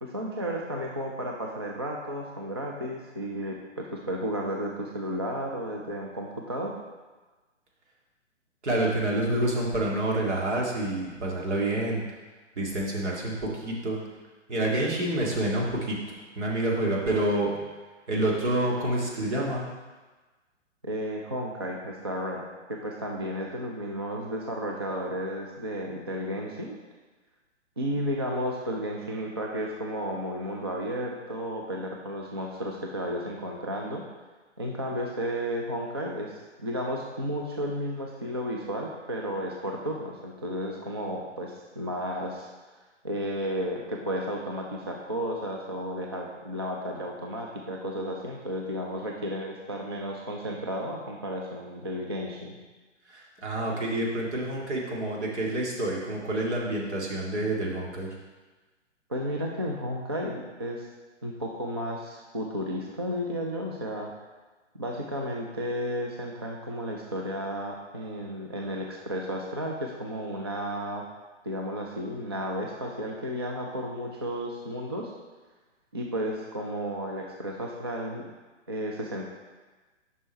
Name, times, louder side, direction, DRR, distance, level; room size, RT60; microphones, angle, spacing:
voice 1, 0.0-6.7 20.8-26.8 27.8-34.0 34.6-42.5 43.0-52.6 59.1-60.9 61.2-64.1 64.7-71.0 71.4-75.1 75.9-78.3 78.7-79.3, equal, 20° right, -1 dB, 0.3 m, -33 dB
voice 2, 8.6-12.0 12.6-14.0 14.5-16.0 16.4-17.6 18.1-19.7 53.1-58.1, right 1 dB, 65° right, -2 dB, 2.1 m, -28 dB
7.4 x 5.5 x 4.3 m, 1.3 s
figure-of-eight pair, 135°, 37 cm